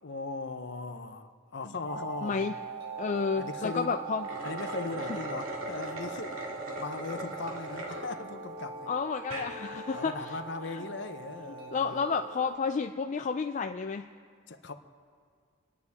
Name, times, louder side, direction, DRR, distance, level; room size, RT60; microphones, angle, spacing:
voice 1, 0.0-2.5 3.1-4.0 4.4-8.9 9.9-12.1 14.5-14.7, left 3 dB, 55° left, 8 dB, 0.8 m, -39 dB
sound 1, 1.9-12.6, right 5 dB, 50° right, 1.6 m, -41 dB
voice 2, 2.2-2.5 3.0-4.2 8.9-10.4 10.7-10.8 11.7-14.1, left 5 dB, 35° left, 6 dB, 0.3 m, -31 dB
sound 2, 4.1-8.1 8.6-8.7 9.2-9.5, right 1 dB, 80° right, 2.0 m, -39 dB
28.5 x 9.7 x 3.6 m, 2.1 s
head